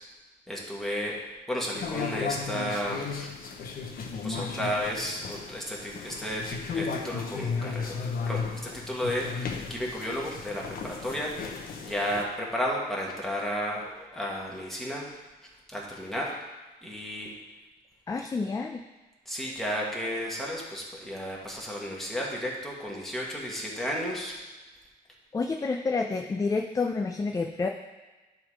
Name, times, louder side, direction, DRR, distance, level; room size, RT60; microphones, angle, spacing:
voice 1, 0.5-1.2 1.5-3.3 4.2-8.0 8.2-11.3 11.8-15.2 15.7-16.4 16.8-17.3 19.3-24.4, equal, ahead, -3 dB, 1.8 m, -33 dB
sound 1, 1.7-12.2, left 5 dB, 55° left, 0.9 m, -35 dB
voice 2, 18.1-18.8 25.3-27.7, left 4 dB, 20° left, 4 dB, 0.4 m, -29 dB
10.5 x 3.7 x 4.9 m, 1.2 s
cardioid pair, 115°, 18 cm